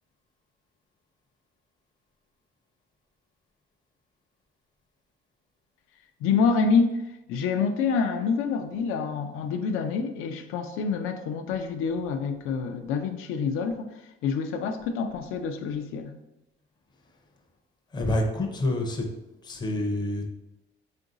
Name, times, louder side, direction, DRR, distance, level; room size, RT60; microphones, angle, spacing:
voice 1, 6.2-7.0 7.3-13.9 14.2-16.1, left 5 dB, 85° left, 7 dB, 0.4 m, -27 dB
voice 2, 17.9-19.0 19.4-20.2, left 1 dB, 20° left, 3 dB, 0.5 m, -27 dB
3.8 x 2.5 x 3.8 m, 0.95 s
cardioid pair, 165°, 21 cm